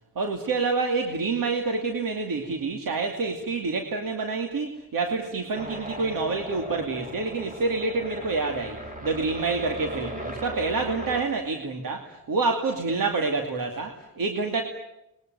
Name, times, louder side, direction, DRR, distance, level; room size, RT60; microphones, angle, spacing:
voice 1, 0.2-14.6, right 3 dB, 90° right, 4 dB, 2.6 m, -27 dB
sound 1, 5.5-11.2, equal, 25° right, 3.5 m, -38 dB
29.0 x 21.5 x 9.3 m, 0.90 s
wide cardioid pair, 135°, 33 cm